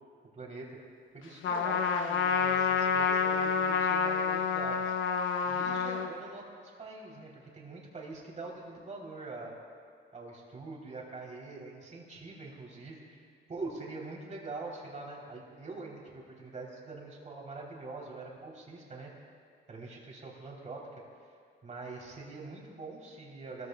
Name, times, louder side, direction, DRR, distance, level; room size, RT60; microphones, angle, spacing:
voice 1, 0.3-0.8 1.1-4.9 5.4-9.6 10.1-19.1 19.7-20.8 21.6-23.7, right 3 dB, 35° right, -2 dB, 3.3 m, -44 dB
Trumpet, 1.4-6.1, left 6 dB, 75° left, 0.9 m, -28 dB
19.0 x 14.0 x 2.3 m, 2.2 s
cardioid pair, 90°, 20 cm